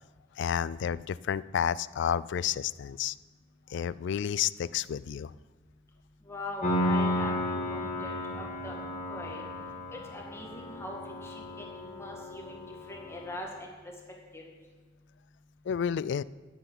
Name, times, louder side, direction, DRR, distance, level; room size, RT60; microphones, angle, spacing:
voice 1, 0.4-3.1 3.7-5.3 15.7-16.2, left 8 dB, 65° left, 19 dB, 0.3 m, -30 dB
voice 2, 6.2-7.3 7.7-8.8 9.1-9.4 9.9-13.7 14.3-14.4, left 1 dB, 15° left, -1 dB, 2.1 m, -42 dB
Piano, 6.6-13.4, left 1 dB, 40° left, 1.8 m, -33 dB
9.7 x 8.2 x 8.7 m, 1.3 s
head